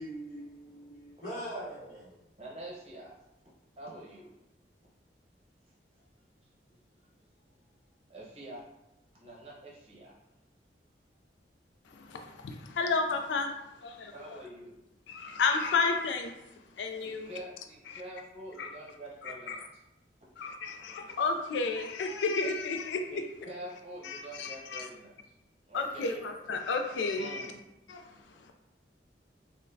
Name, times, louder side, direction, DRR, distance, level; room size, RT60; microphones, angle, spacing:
voice 1, 0.0-2.2, right 1 dB, 45° left, -7 dB, 1.1 m, -42 dB
voice 2, 2.4-3.1 3.8-4.3 5.9-6.0 8.1-8.7 9.1-10.2 14.1-14.8 17.0-19.6 23.1-25.1 25.7-26.2 27.2-27.6, right 1 dB, 35° right, -5 dB, 0.8 m, -46 dB
voice 3, 11.9-13.5 13.8-14.1 15.1-16.4 16.8-17.3 17.9-18.0 18.6-18.7 19.2-19.6 20.4-23.2 24.0-24.9 25.7-27.5 27.9-28.5, left 4 dB, 85° left, 4 dB, 0.3 m, -32 dB
3.9 x 2.1 x 2.6 m, 0.93 s
head